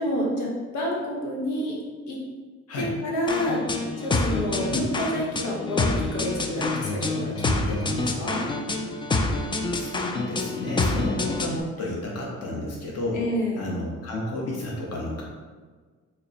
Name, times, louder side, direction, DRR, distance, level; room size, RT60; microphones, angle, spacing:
voice 1, 0.0-1.8 2.1-2.2 2.8-3.6 4.0-8.4 13.1-13.7, left 1 dB, 90° left, -3 dB, 1.1 m, -29 dB
sound 1, 3.3-11.6, left 2 dB, 15° left, 0.3 m, -27 dB
voice 2, 9.8-13.2 13.6-15.2, left 1 dB, 55° left, -3 dB, 1.0 m, -31 dB
4.0 x 2.1 x 4.0 m, 1.5 s
cardioid pair, 90°, 30 cm